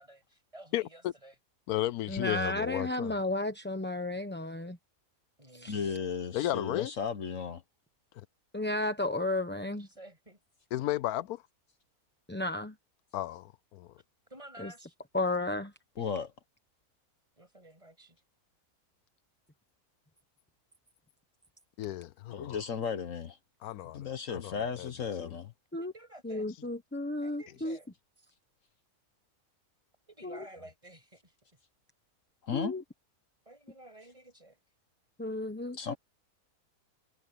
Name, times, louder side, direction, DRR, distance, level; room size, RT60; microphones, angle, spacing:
voice 1, 0.0-1.3 5.4-6.0 9.7-10.4 14.3-14.9 17.4-18.2 25.7-26.5 27.2-27.9 30.1-31.3 33.5-34.6, right 1 dB, 20° right, 7.7 m, -52 dB
voice 2, 0.7-1.1 1.7-3.1 6.3-6.9 8.2-8.3 10.7-11.4 13.1-13.9 21.8-22.6 23.6-24.9 25.2-25.3, left 14 dB, 85° left, 1.1 m, -34 dB
voice 3, 2.1-4.8 5.5-5.8 8.5-9.9 12.3-12.8 14.6-14.7 15.1-15.7 25.7-25.9 26.2-27.8 30.2-30.4 32.5-32.8 35.2-35.9, left 2 dB, 10° left, 0.8 m, -33 dB
voice 4, 5.7-7.6 16.0-16.3 22.3-23.4 23.9-25.5 32.4-32.7 35.7-35.9, left 6 dB, 60° left, 1.3 m, -35 dB
omnidirectional pair, 1.6 m